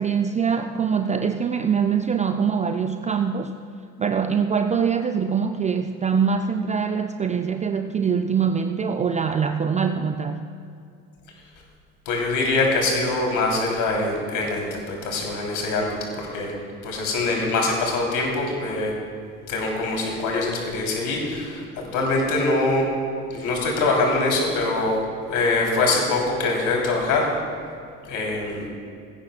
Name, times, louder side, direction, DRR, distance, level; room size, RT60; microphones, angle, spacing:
voice 1, 0.0-3.6 4.0-10.4, right 6 dB, 20° right, 7 dB, 0.4 m, -23 dB
voice 2, 12.0-16.5 16.8-18.9 19.5-21.6 21.9-22.9 23.3-27.3 28.1-28.6, left 2 dB, 50° left, 0 dB, 3.3 m, -23 dB
19.0 x 16.0 x 2.3 m, 2.3 s
figure-of-eight pair, 60°, 41 cm